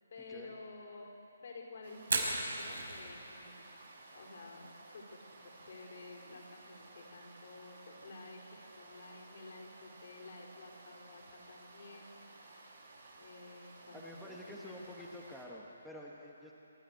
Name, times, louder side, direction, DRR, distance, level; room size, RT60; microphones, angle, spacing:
voice 1, 0.1-1.1 1.4-3.8 4.1-12.8 13.1-15.1, left 3 dB, 55° left, -1 dB, 4.6 m, -52 dB
sound 1, 1.8-15.5, right 2 dB, 55° right, 5.4 m, -56 dB
Fire, 2.0-15.9, right 3 dB, 75° right, 4.5 m, -45 dB
voice 2, 13.9-16.5, left 1 dB, ahead, -5 dB, 1.5 m, -49 dB
27.0 x 12.0 x 8.0 m, 3.0 s
figure-of-eight pair, 145°, 0 cm